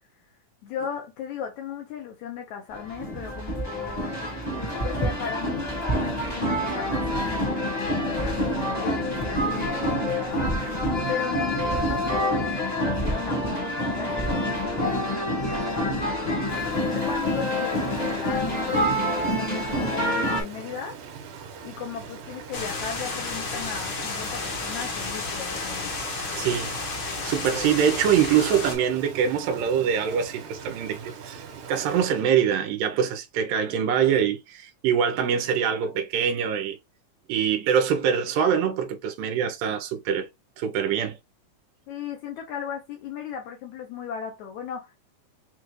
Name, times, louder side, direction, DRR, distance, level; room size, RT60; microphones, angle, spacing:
voice 1, 0.6-4.2 4.8-5.8 6.3-7.5 7.8-10.5 11.1-12.5 12.8-16.1 16.7-19.1 19.3-21.0 21.6-25.9 41.9-45.0, left 7 dB, 75° left, 1.8 m, -37 dB
sound 1, 2.7-20.4, equal, 20° left, 1.0 m, -27 dB
Rain, 16.5-32.3, right 6 dB, 70° right, 2.4 m, -42 dB
sound 2, 22.5-28.8, left 3 dB, 55° left, 1.2 m, -32 dB
voice 2, 26.4-26.7 27.2-31.0 31.3-36.8 37.3-40.3 40.6-41.2, right 8 dB, 85° right, 2.4 m, -24 dB
5.9 x 2.5 x 3.0 m
omnidirectional pair, 4.0 m